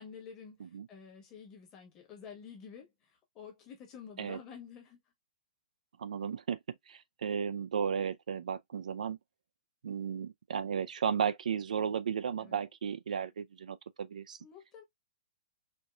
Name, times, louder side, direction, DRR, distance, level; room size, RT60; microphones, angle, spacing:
voice 1, 0.0-2.9 3.3-5.0 12.4-12.6 14.4-14.8, left 6 dB, 15° left, 1.2 m, -49 dB
voice 2, 6.0-9.2 9.8-14.4, right 7 dB, 85° right, 0.5 m, -34 dB
4.4 x 2.7 x 2.3 m
hypercardioid pair, 180°, 4 cm